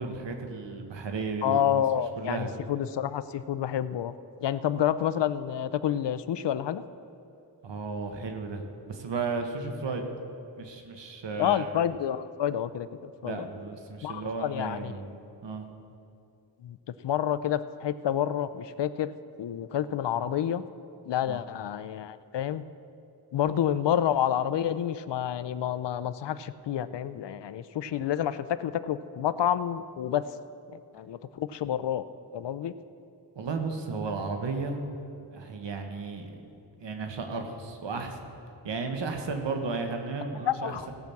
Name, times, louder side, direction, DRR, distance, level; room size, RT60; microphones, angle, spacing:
voice 1, 0.0-1.8 2.2-2.5 7.6-10.1 10.6-11.7 13.2-15.1 15.4-15.7 21.3-21.4 33.3-34.8 35.3-36.5 36.8-38.2 38.6-40.9, right 4 dB, 75° right, 4 dB, 1.4 m, -34 dB
voice 2, 1.4-4.1 4.4-6.8 11.4-12.9 13.2-13.5 14.0-14.9 16.6-16.8 17.0-19.1 19.4-20.6 21.1-22.6 23.3-30.3 30.7-32.0 32.3-32.7 40.5-40.9, left 10 dB, 70° left, 14 dB, 0.6 m, -29 dB
17.0 x 6.0 x 7.0 m, 2.6 s
cardioid pair, 75°, 44 cm